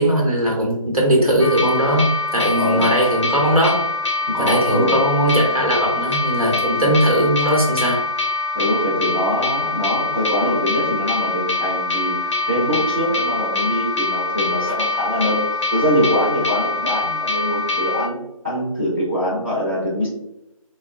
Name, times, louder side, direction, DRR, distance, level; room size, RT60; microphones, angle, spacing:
voice 1, 0.0-3.8 4.4-8.0, right 1 dB, 85° right, -1 dB, 1.0 m, -19 dB
sound 1, 1.4-18.1, left 3 dB, 55° left, 0.5 m, -24 dB
voice 2, 2.6-2.9 4.3-5.0 8.5-18.2 18.4-20.1, equal, 20° right, -9 dB, 0.5 m, -23 dB
2.8 x 2.2 x 2.4 m, 0.85 s
figure-of-eight pair, 160°, 18 cm